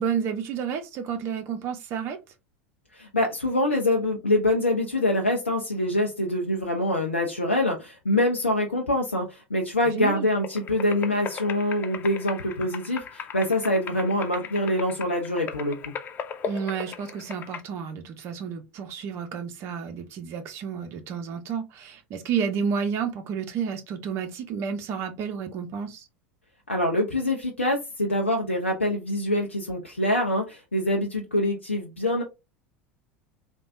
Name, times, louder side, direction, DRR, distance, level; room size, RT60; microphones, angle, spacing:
voice 1, 0.0-2.2 9.8-10.3 16.5-26.1, right 7 dB, 45° right, 0.7 m, -31 dB
voice 2, 2.9-15.9 26.7-32.2, left 1 dB, 85° left, 0.5 m, -25 dB
sound 1, 10.4-17.6, left 7 dB, 30° left, 0.4 m, -37 dB
3.4 x 2.2 x 2.5 m
figure-of-eight pair, 75°, 7 cm